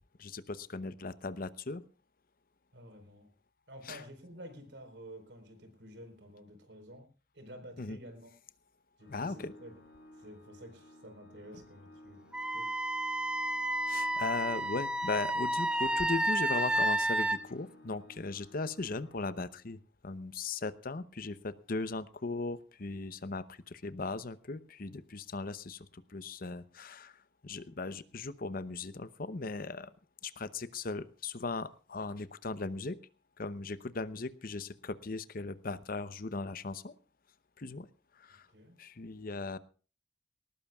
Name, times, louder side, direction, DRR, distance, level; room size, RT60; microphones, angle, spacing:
voice 1, 0.2-1.8 3.8-4.0 7.8-8.0 9.1-9.5 13.9-29.9 30.2-33.0 33.4-36.9 37.6-37.9 38.1-38.5 38.8-39.6, left 3 dB, 55° left, 14 dB, 0.8 m, -38 dB
voice 2, 2.7-3.3 3.7-7.1 7.3-8.3 9.0-9.7 10.2-12.3 12.5-12.7 38.5-38.8, equal, 70° right, 7 dB, 4.4 m, -50 dB
Organ, 9.0-19.8, left 1 dB, 75° left, 4.8 m, -56 dB
Wind instrument woodwind instrument, 12.3-17.4, right 1 dB, 5° right, 0.8 m, -31 dB
19.5 x 19.0 x 2.4 m, 0.38 s
head